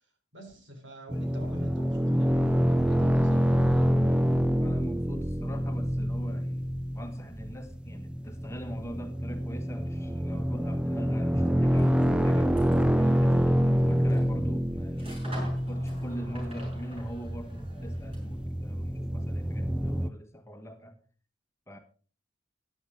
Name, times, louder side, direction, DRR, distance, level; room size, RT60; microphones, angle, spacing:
voice 1, 0.3-3.9 5.8-5.9, left 1 dB, 85° right, 3.7 m, -45 dB
sound 1, 1.1-20.1, equal, 5° right, 0.4 m, -27 dB
voice 2, 4.6-6.7 6.9-12.6 13.0-21.0 21.7-21.8, equal, 15° left, 1.4 m, -42 dB
sound 2, 11.7-18.5, right 1 dB, 30° right, 6.5 m, -48 dB
14.0 x 10.5 x 3.7 m
head